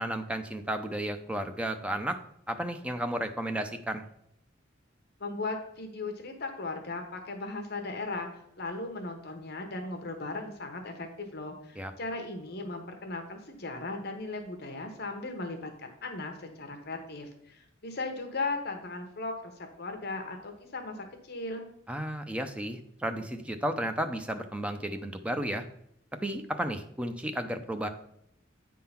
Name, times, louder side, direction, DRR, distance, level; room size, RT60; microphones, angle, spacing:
voice 1, 0.0-2.2 2.5-4.0 11.8-11.9 21.9-25.6 26.2-27.9, right 1 dB, 5° right, 6 dB, 0.5 m, -33 dB
voice 2, 5.2-8.3 8.6-19.5 19.8-21.0 21.2-21.7, left 3 dB, 55° left, 4 dB, 1.0 m, -37 dB
8.7 x 3.8 x 5.8 m, 0.73 s
head